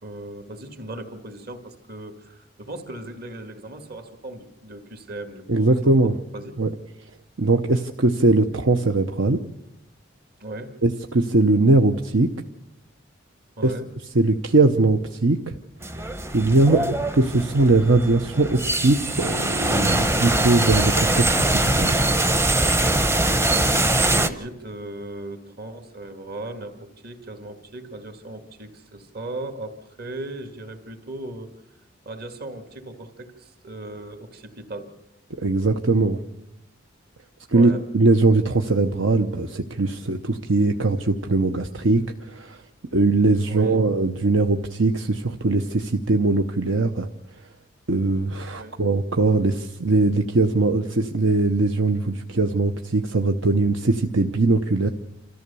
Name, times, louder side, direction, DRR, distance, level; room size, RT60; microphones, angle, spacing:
voice 1, 0.0-6.6 10.4-10.8 13.6-13.9 16.7-16.9 23.9-31.5 32.1-34.9 37.5-37.8 43.5-43.8 48.5-48.8 49.2-49.4, right 2 dB, 50° right, 6 dB, 2.2 m, -37 dB
voice 2, 5.5-6.2 6.6-6.7 7.4-9.4 10.8-12.3 13.6-13.7 14.1-15.5 16.3-16.8 17.2-22.0 35.4-36.2 37.5-42.6 42.9-47.1 47.9-54.9, right 2 dB, 70° right, 5 dB, 0.9 m, -20 dB
sound 1, 15.8-24.3, right 1 dB, 15° right, 0.8 m, -22 dB
28.5 x 14.0 x 7.0 m, 0.91 s
head